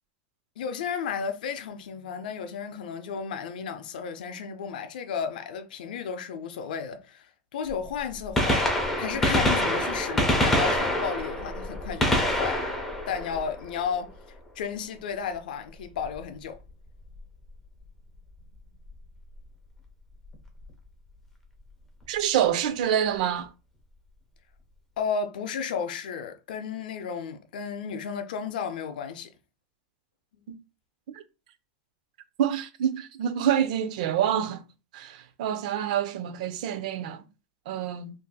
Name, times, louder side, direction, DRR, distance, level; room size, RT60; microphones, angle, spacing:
voice 1, 0.6-12.6 13.1-16.6 25.0-29.3, left 6 dB, 85° left, 0.5 m, -33 dB
Gunshot gunfire, 7.7-7.8 8.2-14.1 16.0-16.2 17.2-17.3 18.9-19.0 20.3-20.4 20.6-20.7, left 1 dB, 5° left, 0.5 m, -26 dB
voice 2, 22.1-23.5 32.4-34.6 34.9-37.2 37.7-38.1, right 10 dB, 60° right, 0.4 m, -27 dB
3.9 x 2.6 x 2.3 m
supercardioid pair, 165°, 5 cm